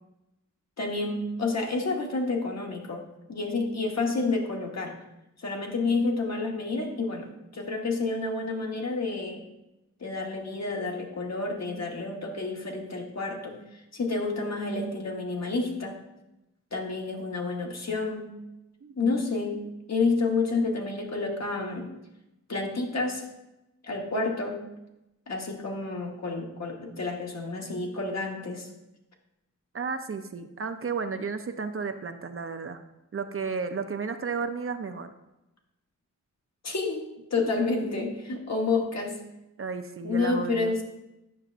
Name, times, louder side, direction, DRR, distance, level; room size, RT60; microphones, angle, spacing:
voice 1, 0.8-3.0 3.3-5.0 5.4-9.4 10.0-13.6 13.9-16.0 16.7-18.3 19.0-19.6 19.9-21.9 22.5-23.3 23.8-24.6 25.3-28.7 36.6-39.2 40.0-40.8, left 3 dB, 55° left, 1 dB, 1.2 m, -29 dB
voice 2, 18.8-19.2 29.7-32.8 33.1-35.1 37.4-37.5 38.0-38.1 39.6-40.7, right 5 dB, 45° right, 8 dB, 0.5 m, -33 dB
9.4 x 5.8 x 2.5 m, 0.93 s
cardioid pair, 60°, 31 cm